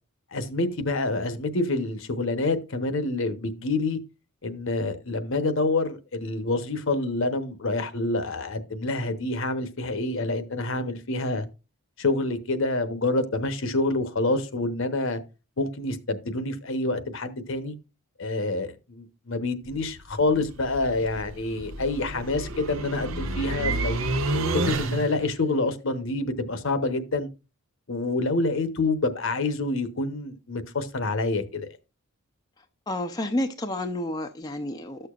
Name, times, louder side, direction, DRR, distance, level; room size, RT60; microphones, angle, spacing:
voice 1, 0.3-4.0 4.4-11.5 12.0-15.2 15.6-17.7 18.2-24.0 24.7-27.3 27.9-31.7, left 2 dB, 60° left, 0.9 m, -27 dB
Start up, 19.6-25.3, right 2 dB, 70° right, 0.8 m, -30 dB
voice 2, 32.9-35.1, left 1 dB, 20° left, 0.5 m, -30 dB
13.0 x 6.7 x 2.4 m
head